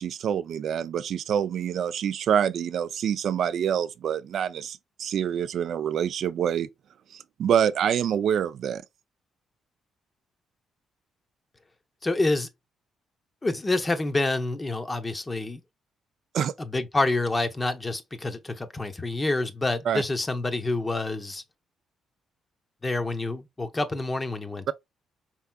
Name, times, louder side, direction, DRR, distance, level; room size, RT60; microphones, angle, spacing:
voice 1, 0.0-6.7 7.1-8.8 16.3-16.5 19.9-20.0 24.7-24.8, right 8 dB, 65° right, 0.3 m, -26 dB
voice 2, 12.0-12.5 13.4-15.6 16.6-21.4 22.8-24.7, left 2 dB, 20° left, 0.7 m, -27 dB
4.5 x 3.4 x 2.2 m
cardioid pair, 90°, 0 cm